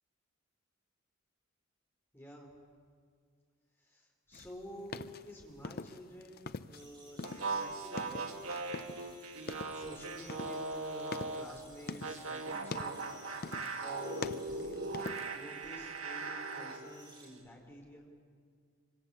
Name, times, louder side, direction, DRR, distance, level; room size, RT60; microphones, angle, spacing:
voice 1, 2.1-2.5 3.8-5.0 5.2-8.4 9.7-13.0 13.8-18.1, equal, 10° left, -1 dB, 4.7 m, -50 dB
sound 1, 4.3-6.9 7.1-9.1 9.4-9.9 10.3-12.3 12.6-13.1 13.4-13.8 14.1-15.4, left 3 dB, 45° left, 0.7 m, -43 dB
sound 2, 6.7-17.3, right 2 dB, 20° right, 6.8 m, -59 dB
sound 3, 7.2-11.6 12.0-16.8, right 3 dB, 80° right, 2.3 m, -39 dB
26.0 x 25.0 x 8.6 m, 2.1 s
head